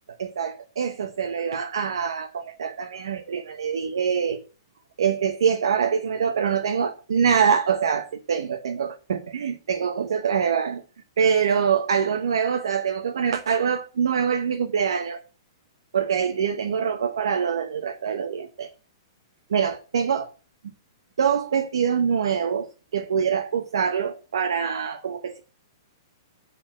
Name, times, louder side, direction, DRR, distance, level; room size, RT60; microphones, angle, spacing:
voice 1, 0.1-4.4 5.0-10.8 11.2-15.2 15.9-18.7 19.5-20.3 21.2-25.4, right 7 dB, 85° right, 1.0 m, -24 dB
8.7 x 4.3 x 7.3 m
hypercardioid pair, 155°, 2 cm